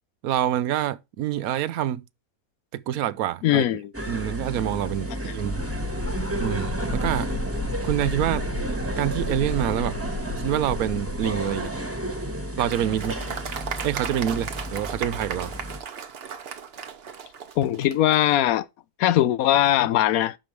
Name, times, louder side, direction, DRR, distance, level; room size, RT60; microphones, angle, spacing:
voice 1, 0.2-2.0 2.7-3.6 4.1-5.6 6.4-7.3 7.8-8.5 9.0-10.0 10.4-11.7 12.6-13.2 13.8-15.5, right 11 dB, 85° right, 1.1 m, -26 dB
voice 2, 3.4-3.9 5.2-5.3 17.6-18.7 19.0-20.4, left 12 dB, 85° left, 1.1 m, -20 dB
sound 1, 3.9-15.8, right 1 dB, 10° right, 1.3 m, -32 dB
sound 2, 5.5-12.2, left 1 dB, 45° left, 0.9 m, -34 dB
Applause, 12.7-18.2, right 6 dB, 50° right, 1.0 m, -36 dB
11.5 x 5.0 x 3.1 m
omnidirectional pair, 1.5 m